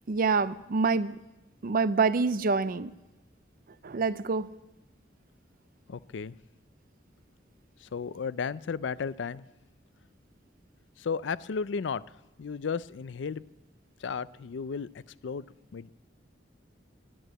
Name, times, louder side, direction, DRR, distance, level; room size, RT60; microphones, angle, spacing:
voice 1, 0.1-1.2 1.6-2.9 3.8-4.5, right 4 dB, 50° right, 0.5 m, -26 dB
voice 2, 5.9-6.3 7.9-9.4 11.0-12.0 12.4-13.4 14.0-14.9 15.2-15.5 15.7-15.9, left 5 dB, 80° left, 0.4 m, -33 dB
11.0 x 11.0 x 7.7 m
head